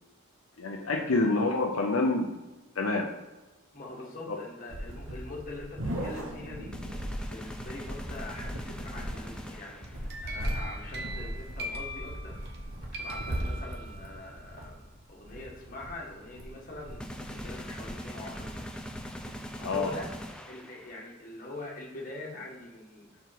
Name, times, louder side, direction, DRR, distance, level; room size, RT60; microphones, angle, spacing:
voice 1, 0.6-2.4 2.8-3.1 4.3-4.4 19.6-19.9, left 3 dB, 70° left, 1 dB, 0.7 m, -27 dB
voice 2, 3.7-12.5 12.9-14.8 15.1-18.7 19.5-20.1 20.4-23.2, left 2 dB, 40° left, -3 dB, 1.8 m, -44 dB
sound 1, 4.7-19.4, equal, 70° right, 1.4 m, -39 dB
sound 2, 6.7-10.1 17.0-21.1, equal, 5° left, 0.5 m, -42 dB
sound 3, 9.8-12.6 12.9-14.2, equal, 50° right, 1.0 m, -41 dB
5.2 x 4.7 x 5.9 m, 1.1 s
head